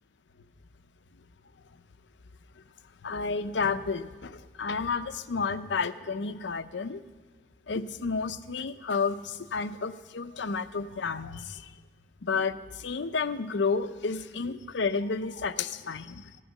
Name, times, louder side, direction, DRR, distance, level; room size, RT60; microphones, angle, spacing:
voice 1, 3.0-7.0 7.7-11.5 12.2-12.6 12.8-16.2, left 4 dB, 75° left, 13 dB, 0.6 m, -31 dB
14.5 x 11.0 x 6.5 m, 1.3 s
head